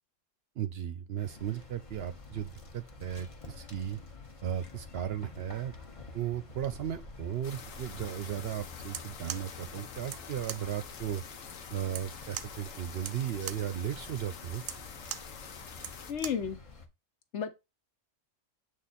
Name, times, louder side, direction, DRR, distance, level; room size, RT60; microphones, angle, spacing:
voice 1, 0.6-4.0 4.4-5.7 6.1-11.2 11.7-14.6, right 10 dB, 60° right, 0.7 m, -36 dB
sound 1, 1.2-16.9, left 3 dB, 30° left, 0.8 m, -49 dB
sound 2, 7.4-16.1, left 7 dB, 85° left, 1.2 m, -47 dB
sound 3, 8.8-16.5, right 11 dB, 90° right, 1.0 m, -43 dB
voice 2, 16.1-16.6 17.3-17.5, left 7 dB, 65° left, 1.1 m, -32 dB
7.5 x 3.0 x 4.1 m
omnidirectional pair, 1.3 m